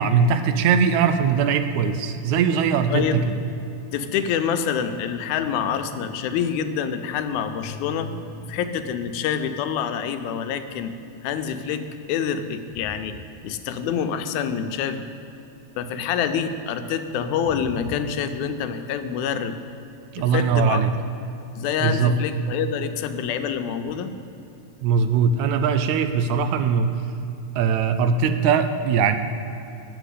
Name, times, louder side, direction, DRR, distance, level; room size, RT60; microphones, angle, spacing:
voice 1, 0.0-3.2 20.2-20.9 21.8-22.2 24.8-26.9 27.6-29.2, right 6 dB, 80° right, 9 dB, 1.9 m, -20 dB
voice 2, 2.9-3.2 3.9-10.9 11.2-13.2 13.4-15.0 15.8-19.6 20.2-20.8 21.5-24.1, left 7 dB, 90° left, 8 dB, 2.0 m, -26 dB
7.7 x 6.8 x 8.2 m, 3.0 s
omnidirectional pair, 3.3 m